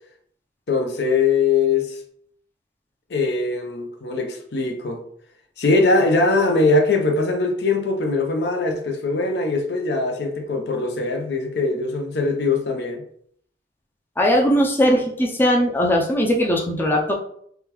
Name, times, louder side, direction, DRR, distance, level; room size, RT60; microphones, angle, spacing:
voice 1, 0.7-2.0 3.1-5.0 5.6-13.0, left 3 dB, 70° left, 0.6 m, -21 dB
voice 2, 14.2-17.1, equal, 10° left, 0.4 m, -19 dB
3.5 x 2.2 x 2.9 m
head